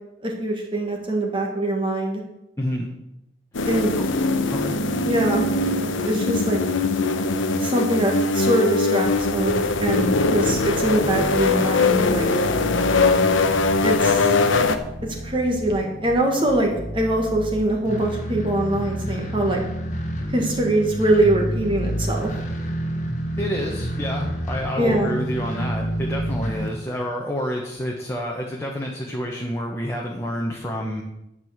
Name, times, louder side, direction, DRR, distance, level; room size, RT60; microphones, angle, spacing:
voice 1, 0.2-2.2 3.7-4.0 5.0-5.4 6.0-6.6 7.6-12.3 13.8-14.3 15.2-19.6 20.3-22.3 24.8-25.1, right 1 dB, 25° right, 0 dB, 1.6 m, -23 dB
voice 2, 2.6-2.9 4.0-4.1 4.5-4.7 23.4-31.0, equal, 15° left, -1 dB, 1.2 m, -28 dB
sound 1, 3.6-14.8, left 3 dB, 80° left, 0.9 m, -21 dB
sound 2, 9.0-26.7, equal, 40° left, 1.3 m, -30 dB
11.0 x 5.5 x 8.0 m, 0.88 s
head